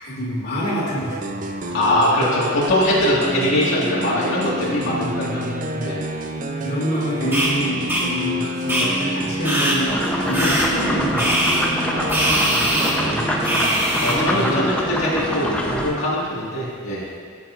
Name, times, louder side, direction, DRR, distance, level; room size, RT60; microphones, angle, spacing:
voice 1, 0.0-1.7 4.9-5.9 6.6-11.5 13.0-13.7 14.1-14.7, equal, 55° left, -6 dB, 2.4 m, -27 dB
sound 1, 1.1-13.7, right 1 dB, 40° right, 0.5 m, -28 dB
voice 2, 1.7-5.4 5.8-6.0 11.9-12.2 12.5-12.7 12.9-13.1 13.4-13.7 14.0-17.0, left 1 dB, 85° left, -8 dB, 1.9 m, -22 dB
sound 2, 7.3-7.5 7.9-8.0 8.7-8.9 9.4-9.8 10.3-10.7 11.2-11.6 12.1-12.9 13.4-14.1, right 1 dB, 10° right, 1.5 m, -21 dB
sound 3, 9.9-15.9, left 1 dB, 5° left, 0.8 m, -25 dB
15.0 x 7.2 x 2.5 m, 2.1 s
head